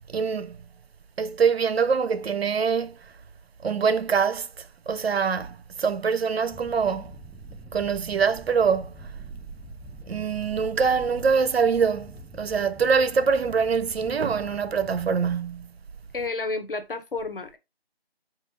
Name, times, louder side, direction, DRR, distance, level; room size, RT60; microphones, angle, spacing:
voice 1, 0.1-0.7 1.2-3.0 3.6-7.1 7.7-9.1 10.1-15.7, right 6 dB, 75° right, 0.5 m, -24 dB
sound 1, 6.5-15.4, left 1 dB, ahead, 0.3 m, -46 dB
voice 2, 16.1-17.6, left 3 dB, 60° left, 0.7 m, -31 dB
3.7 x 2.3 x 3.2 m
figure-of-eight pair, 175°, 31 cm